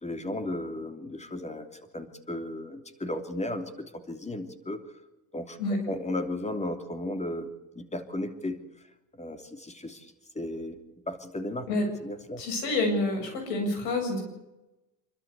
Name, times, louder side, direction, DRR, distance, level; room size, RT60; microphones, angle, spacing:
voice 1, 0.0-1.7 1.9-4.8 5.3-5.6 5.9-8.6 9.2-10.1 10.3-10.8 11.1-11.6 12.0-12.4, left 1 dB, 15° left, 7 dB, 3.0 m, -35 dB
voice 2, 12.4-14.2, left 2 dB, 80° left, 3 dB, 7.8 m, -28 dB
26.5 x 12.5 x 8.2 m, 1.0 s
supercardioid pair, 85°, 49 cm